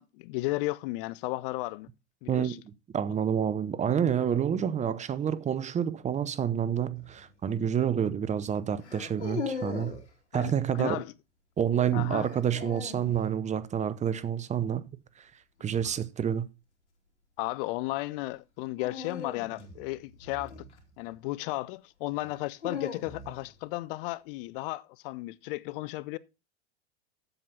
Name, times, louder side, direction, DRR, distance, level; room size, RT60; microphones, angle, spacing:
voice 1, 0.0-1.9 2.2-2.6 10.3-11.1 11.9-12.3 17.4-20.5 21.0-26.2, left 19 dB, 50° left, 0.6 m, -34 dB
voice 2, 2.3-10.0 10.3-11.0 11.6-14.9 15.2-15.3 15.6-16.5, right 8 dB, 20° right, 0.7 m, -28 dB
sound 1, 7.0-7.3 8.8-10.1 12.2-13.2 15.6-16.0 18.8-21.1 22.2-23.5, left 5 dB, 80° left, 2.8 m, -39 dB
7.8 x 7.6 x 5.5 m
hypercardioid pair, 100°, 34 cm